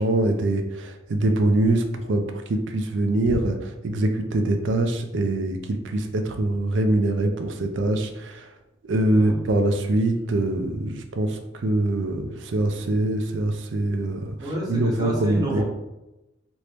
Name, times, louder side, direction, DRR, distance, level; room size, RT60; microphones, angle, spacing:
voice 1, 0.0-3.6 3.8-8.5 8.9-14.4 14.7-15.6, right 2 dB, 65° right, 6 dB, 0.4 m, -23 dB
voice 2, 14.4-15.6, equal, 20° right, -6 dB, 1.0 m, -30 dB
3.3 x 2.6 x 2.9 m, 0.97 s
head